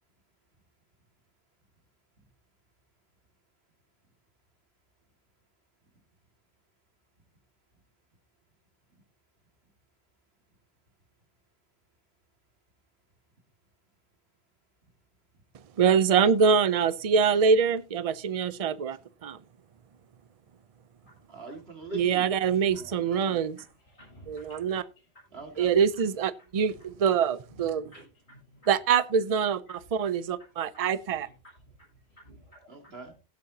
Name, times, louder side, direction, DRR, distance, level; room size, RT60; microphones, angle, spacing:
voice 1, 15.8-19.4 21.9-23.6 24.3-24.8 25.6-27.9 28.7-31.3, right 6 dB, 40° right, 0.6 m, -24 dB
voice 2, 21.3-22.3 22.7-23.4 25.3-25.7 32.7-33.1, right 2 dB, 70° right, 2.5 m, -43 dB
voice 3, 23.9-24.8 27.5-27.6 27.9-28.7 32.2-32.6, equal, 80° left, 7.4 m, -53 dB
16.5 x 8.7 x 2.8 m
omnidirectional pair, 1.1 m